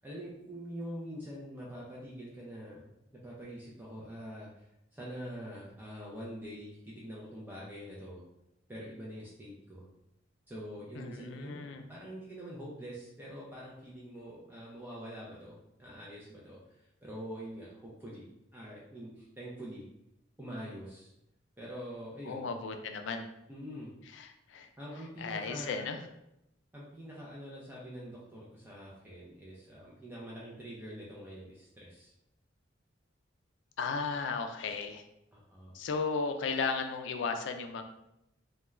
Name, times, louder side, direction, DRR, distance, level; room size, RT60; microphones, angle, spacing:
voice 1, 0.0-2.9 3.2-8.2 8.7-9.8 10.5-19.8 20.4-21.1 21.6-22.5 23.5-23.9 24.8-25.9 26.7-32.1 35.3-35.7, equal, 10° right, -6 dB, 0.4 m, -45 dB
voice 2, 10.9-11.8 22.3-23.2 24.1-24.7 25.2-26.0 33.8-35.0 35.7-37.8, left 4 dB, 70° left, 6 dB, 0.3 m, -35 dB
2.3 x 2.2 x 3.0 m, 0.85 s
head